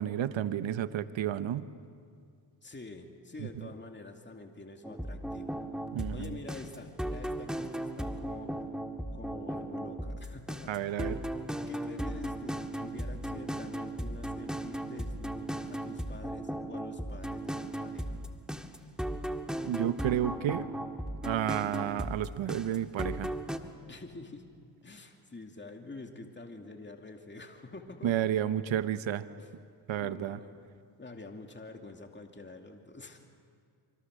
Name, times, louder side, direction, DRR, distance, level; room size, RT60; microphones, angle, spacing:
voice 1, 0.0-1.7 3.4-3.5 5.9-6.3 10.7-11.2 19.7-20.7 21.2-23.3 28.0-29.2 29.9-30.4, right 10 dB, 65° right, 13 dB, 1.1 m, -31 dB
voice 2, 2.6-5.6 6.1-8.7 9.1-11.1 11.7-18.2 23.9-24.5 24.8-28.2 29.4-29.5 30.0-30.7 31.0-33.2, left 2 dB, 20° left, 3 dB, 2.6 m, -47 dB
sound 1, 4.8-23.6, right 1 dB, ahead, 1.8 m, -36 dB
25.5 x 25.0 x 6.5 m, 2.2 s
supercardioid pair, 60°, 50 cm